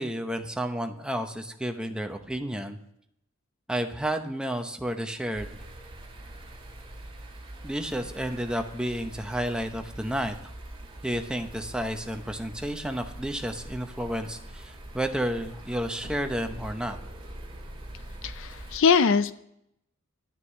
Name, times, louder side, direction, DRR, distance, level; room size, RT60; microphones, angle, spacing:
voice 1, 0.0-2.8 3.7-5.5 7.6-10.5 11.0-17.0, right 1 dB, 5° right, 5 dB, 0.8 m, -31 dB
sound 1, 5.3-18.8, right 1 dB, 25° right, 2.2 m, -43 dB
voice 2, 18.2-19.3, left 6 dB, 65° left, 14 dB, 0.5 m, -22 dB
11.5 x 6.0 x 8.1 m, 0.77 s
head